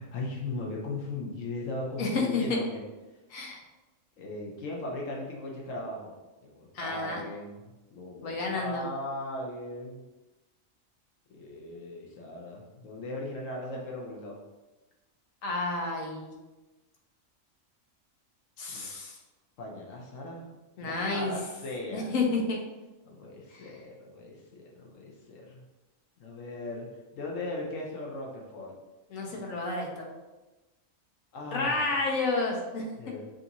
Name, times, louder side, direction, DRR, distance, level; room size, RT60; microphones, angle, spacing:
voice 1, 0.0-2.8 4.2-10.0 11.3-14.4 18.7-18.9 19.6-20.5 20.8-22.1 23.0-25.6 26.2-26.9 27.1-28.7 29.3-29.5 31.3-31.8 33.0-33.3, left 2 dB, 75° left, -1 dB, 1.2 m, -38 dB
voice 2, 2.0-2.6 3.3-3.6 6.7-7.2 8.2-8.9 15.4-16.3 18.6-19.2 20.8-21.3 21.9-22.6 23.5-23.7 29.1-30.1 31.5-32.8, left 3 dB, 90° left, 0 dB, 1.2 m, -30 dB
6.1 x 2.7 x 2.9 m, 1.1 s
omnidirectional pair, 1.4 m